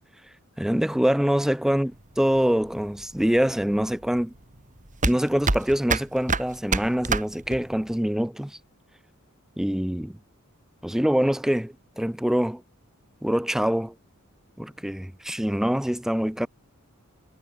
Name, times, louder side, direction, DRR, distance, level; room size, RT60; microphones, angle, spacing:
voice 1, 0.6-1.9 2.2-4.3 5.0-8.6 9.6-10.2 10.8-12.6 13.2-13.9 14.6-16.5, equal, ahead, 0.3 m, -24 dB
sound 1, 1.9-7.9, right 3 dB, 35° right, 2.5 m, -28 dB
head